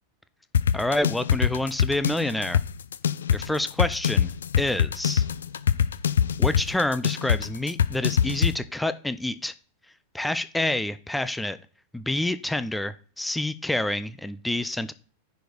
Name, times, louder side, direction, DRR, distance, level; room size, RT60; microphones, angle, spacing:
sound 1, 0.5-8.5, left 8 dB, 65° left, 0.5 m, -23 dB
voice 1, 0.7-2.6 3.3-4.3 4.6-5.3 6.4-9.5 10.1-11.6 11.9-14.9, left 1 dB, 5° left, 14 dB, 0.6 m, -28 dB
10.5 x 4.8 x 5.2 m, 0.40 s
figure-of-eight pair, 90°, 0 cm